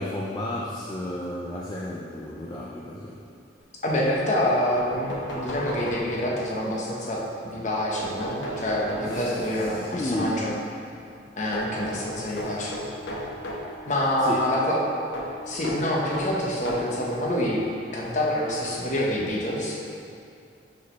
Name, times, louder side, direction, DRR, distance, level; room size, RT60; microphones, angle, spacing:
voice 1, 0.0-3.2 9.1-10.5 12.1-12.6 14.2-14.5, left 1 dB, 20° left, -5 dB, 0.4 m, -33 dB
voice 2, 3.8-10.6 11.4-12.7 13.8-14.8 15.4-19.8, left 1 dB, 40° left, -3 dB, 0.9 m, -26 dB
sound 1, 4.7-6.5 8.0-10.0 11.5-13.7 15.1-17.0 17.9-18.0 19.3-19.4 19.7-19.8, equal, 85° left, 1.0 m, -35 dB
5.0 x 4.2 x 5.6 m, 2.5 s
head